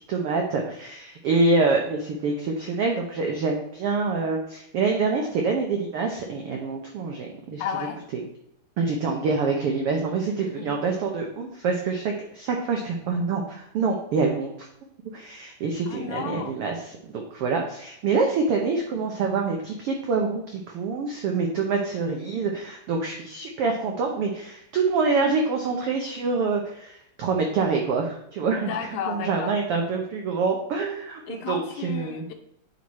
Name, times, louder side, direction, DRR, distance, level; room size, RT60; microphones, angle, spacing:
voice 1, 0.1-7.6 8.1-8.2 8.8-14.7 15.1-32.2, right 4 dB, 80° right, 1 dB, 1.2 m, -26 dB
voice 2, 7.6-8.0 10.4-10.8 15.9-16.5 28.7-29.5 31.3-32.3, left 7 dB, 75° left, 5 dB, 2.1 m, -33 dB
8.9 x 4.7 x 4.1 m, 0.73 s
omnidirectional pair, 3.7 m